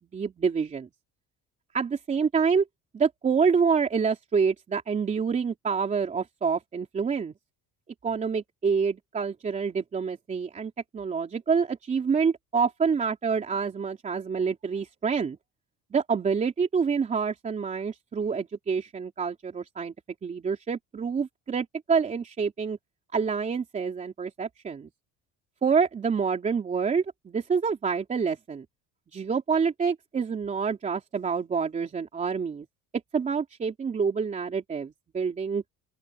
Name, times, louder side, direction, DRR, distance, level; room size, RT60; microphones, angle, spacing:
voice 1, 0.1-0.9 1.7-2.6 2.9-7.3 8.0-15.4 15.9-19.9 20.2-22.8 23.1-24.9 25.6-28.6 29.1-32.6 33.1-35.6, right 5 dB, 25° right, 3.4 m, -27 dB
open air
cardioid pair, 180°, 32 cm